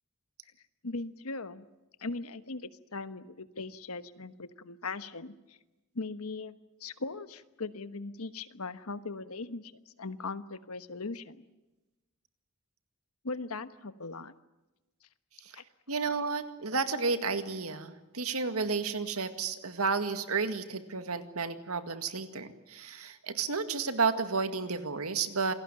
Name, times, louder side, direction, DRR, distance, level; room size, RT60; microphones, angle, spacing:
voice 1, 0.8-1.6 2.0-5.6 5.9-9.7 10.0-11.4 13.2-14.3 15.5-15.6, left 3 dB, 85° left, 12 dB, 1.3 m, -39 dB
voice 2, 15.9-25.5, right 4 dB, 90° right, 9 dB, 2.0 m, -32 dB
27.0 x 19.0 x 9.1 m, 1.1 s
head